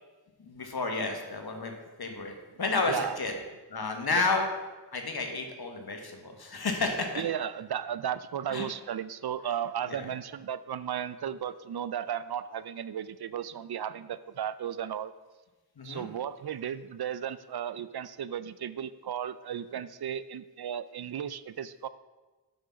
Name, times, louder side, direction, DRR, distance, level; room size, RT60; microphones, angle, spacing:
voice 1, 0.4-1.7 2.0-3.3 3.7-4.5 4.9-7.2 8.5-8.7 9.9-10.0 15.8-16.1, left 3 dB, 65° left, 4 dB, 1.4 m, -31 dB
voice 2, 2.9-3.2 4.1-4.3 7.2-15.1 15.8-21.9, right 9 dB, 65° right, 15 dB, 0.5 m, -35 dB
7.7 x 6.3 x 5.7 m, 1.2 s
wide cardioid pair, 80°, 41 cm